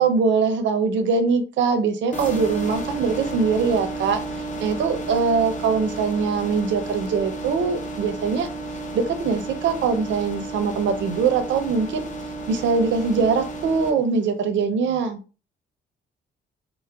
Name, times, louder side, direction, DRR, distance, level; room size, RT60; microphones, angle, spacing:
voice 1, 0.0-8.5 8.9-12.1 12.5-15.2, right 5 dB, 70° right, 7 dB, 0.5 m, -22 dB
sound 1, 2.1-13.9, right 2 dB, 40° left, 0.6 m, -32 dB
4.6 x 2.1 x 2.2 m, 0.34 s
cardioid pair, 90°, 20 cm